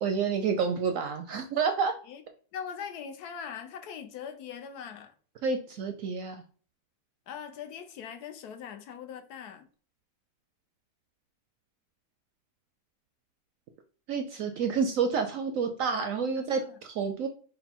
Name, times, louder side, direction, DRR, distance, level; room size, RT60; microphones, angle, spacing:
voice 1, 0.0-2.0 5.4-6.4 14.1-17.3, right 5 dB, 70° right, 0.8 m, -29 dB
voice 2, 2.5-5.1 7.3-9.7 16.5-16.7, left 7 dB, 75° left, 1.2 m, -41 dB
5.2 x 2.1 x 4.3 m
omnidirectional pair, 1.8 m